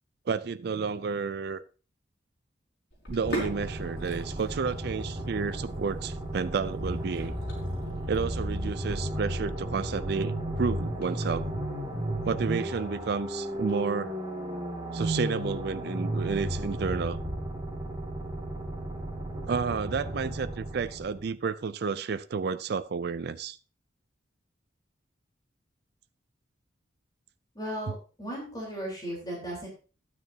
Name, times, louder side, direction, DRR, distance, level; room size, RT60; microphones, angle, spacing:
voice 1, 0.3-1.6 3.1-7.4 8.1-11.5 12.2-14.1 14.9-17.2 19.5-23.6, right 5 dB, 60° right, 0.4 m, -31 dB
Sink (filling or washing), 2.9-13.7, equal, 60° left, 4.6 m, -44 dB
sound 1, 3.2-21.3, right 1 dB, 25° right, 2.1 m, -34 dB
voice 2, 27.5-29.7, equal, 20° left, 3.8 m, -36 dB
13.0 x 9.4 x 2.8 m
head